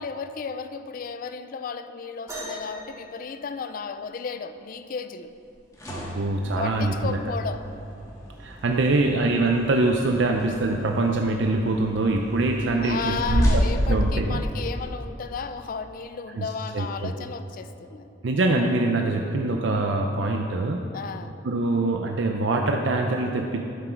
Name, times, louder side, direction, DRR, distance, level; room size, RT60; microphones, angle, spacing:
voice 1, 0.0-5.3 6.5-7.7 12.8-18.1 20.9-21.4, left 5 dB, 45° left, 10 dB, 0.3 m, -34 dB
sound 1, 2.3-4.2 5.8-5.9 6.7-7.0 7.9-8.0, equal, 15° right, 2.3 m, -40 dB
sound 2, 5.5-14.8, equal, 20° left, 1.7 m, -30 dB
voice 2, 5.9-7.2 8.4-14.4 16.3-16.4 16.7-17.1 18.2-20.8 21.4-23.6, right 2 dB, 70° right, 3 dB, 0.5 m, -24 dB
11.5 x 6.1 x 4.5 m, 2.7 s
head